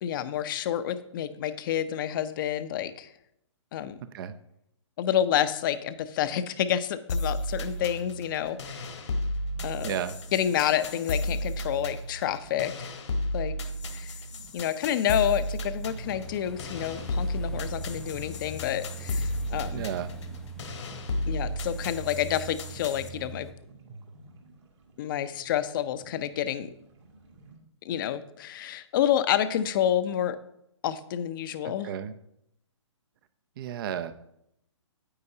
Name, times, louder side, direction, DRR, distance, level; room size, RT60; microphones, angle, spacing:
voice 1, 0.0-3.1 3.7-4.0 5.0-9.0 9.6-10.0 10.3-13.0 13.3-13.5 13.9-14.2 14.5-19.8 21.3-23.5 25.0-26.7 27.8-30.4 30.8-31.9, left 10 dB, 45° left, 12 dB, 0.7 m, -29 dB
sound 1, 7.1-23.1, left 1 dB, 70° left, 1.4 m, -33 dB
sound 2, 8.7-27.6, right 3 dB, 65° right, 2.2 m, -53 dB
voice 2, 9.8-10.1 19.7-20.1 31.6-32.1 33.6-34.1, right 9 dB, 45° right, 11 dB, 0.6 m, -33 dB
sound 3, 16.0-23.5, equal, 5° left, 0.5 m, -43 dB
9.7 x 8.5 x 2.8 m, 0.77 s
hypercardioid pair, 135°, 16 cm